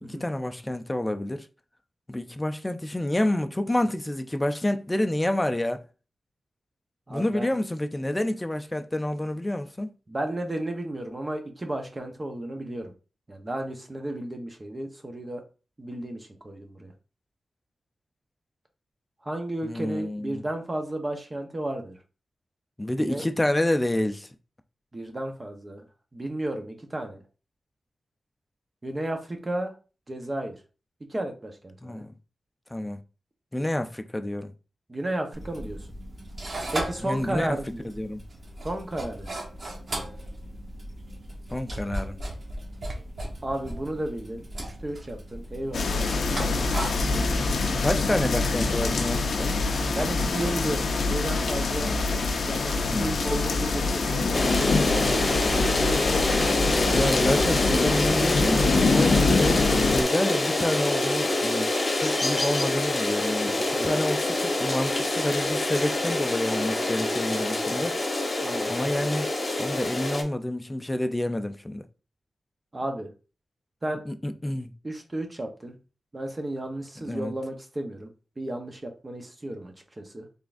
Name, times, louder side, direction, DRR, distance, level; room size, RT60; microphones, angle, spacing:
voice 1, 0.0-1.5 2.1-5.8 7.1-9.9 19.6-20.4 22.8-24.3 31.8-32.1 32.7-33.0 33.5-34.5 37.0-37.6 38.0-38.2 41.5-42.2 45.8-46.1 46.5-46.6 47.1-49.6 51.8-52.0 52.9-53.1 56.9-67.9 68.7-69.3 69.6-71.9 74.1-74.7 77.1-77.3, left 1 dB, 15° left, 0.4 m, -28 dB
voice 2, 7.1-7.5 10.1-12.9 13.3-15.4 15.8-16.9 19.2-22.0 23.0-23.2 24.9-25.8 26.1-27.2 28.8-29.7 30.1-30.6 31.1-32.0 34.9-35.9 36.7-37.9 38.6-39.4 43.4-46.8 49.9-51.9 52.5-56.1 63.7-63.9 68.4-68.7 72.7-73.1 73.8-74.0 74.8-75.8 76.1-78.1 78.4-80.3, right 1 dB, 30° right, 0.8 m, -33 dB
sound 1, 35.3-48.0, right 1 dB, 55° right, 1.0 m, -37 dB
sound 2, 45.7-60.0, left 3 dB, 80° left, 0.5 m, -25 dB
sound 3, 54.3-70.2, left 2 dB, 35° left, 1.0 m, -26 dB
3.7 x 3.4 x 2.5 m
wide cardioid pair, 85°, 0 cm